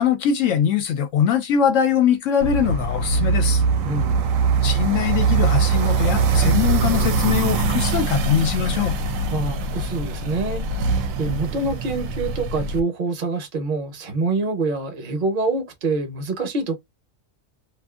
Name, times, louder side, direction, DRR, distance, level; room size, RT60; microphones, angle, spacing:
voice 1, 0.0-3.6 4.6-8.9, left 8 dB, 75° left, 0.9 m, -21 dB
sound 1, 2.4-12.8, right 4 dB, 85° right, 1.0 m, -22 dB
voice 2, 3.8-4.4 9.3-16.8, right 3 dB, 45° right, 1.0 m, -26 dB
2.5 x 2.5 x 2.3 m
omnidirectional pair, 1.4 m